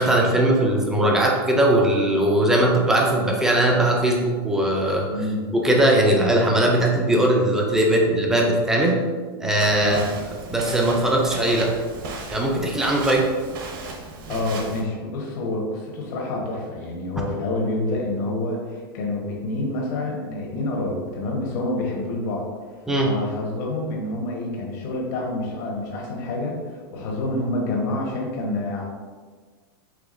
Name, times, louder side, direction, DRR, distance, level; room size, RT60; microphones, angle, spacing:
voice 1, 0.0-5.1 5.5-9.0 9.4-10.0 10.5-11.7 12.3-13.3 22.9-23.1, right 1 dB, 5° right, -1 dB, 0.3 m, -19 dB
voice 2, 5.1-5.4 9.8-10.1 14.3-22.5 23.0-28.8, left 2 dB, 45° left, -2 dB, 1.1 m, -27 dB
Walk footsteps, 9.6-14.8, right 3 dB, 55° right, 0.7 m, -36 dB
4.9 x 3.4 x 2.5 m, 1.5 s
supercardioid pair, 170°, 13 cm